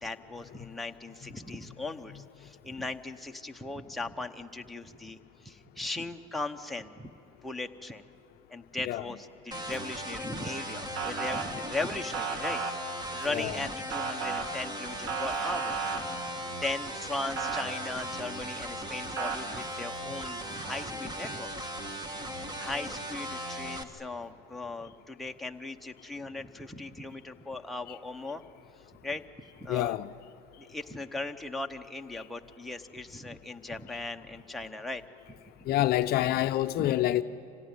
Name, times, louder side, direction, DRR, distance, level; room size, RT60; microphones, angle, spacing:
voice 1, 0.0-7.1 7.4-8.0 8.5-16.1 16.6-21.7 22.5-28.4 29.0-29.2 29.6-30.0 30.6-35.0 35.6-35.9 36.7-37.0, left 2 dB, ahead, 0.9 m, -38 dB
sound 1, 9.5-23.8, equal, 20° right, 1.6 m, -38 dB
Motor vehicle (road) / Siren, 11.0-11.4 12.1-12.7 13.9-14.4 15.1-16.0 17.4-17.6 19.2-19.4, right 5 dB, 65° right, 2.3 m, -32 dB
voice 2, 29.7-30.1 32.1-32.2 35.7-37.2, left 14 dB, 50° left, 0.6 m, -27 dB
25.5 x 17.0 x 9.6 m
supercardioid pair, 120°, 21 cm